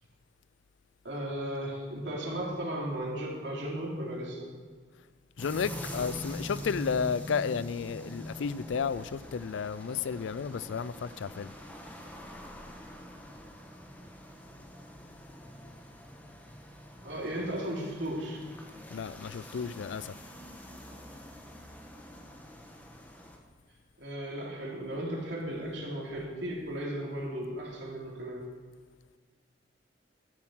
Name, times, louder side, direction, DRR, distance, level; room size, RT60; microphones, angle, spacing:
voice 1, 1.0-4.5 17.0-18.4 24.0-28.5, right 1 dB, 70° right, 3.1 m, -35 dB
voice 2, 5.4-11.5 18.9-20.1, left 6 dB, 90° left, 0.4 m, -32 dB
sound 1, 5.4-23.4, left 1 dB, 10° left, 1.3 m, -45 dB
13.0 x 7.3 x 6.3 m
head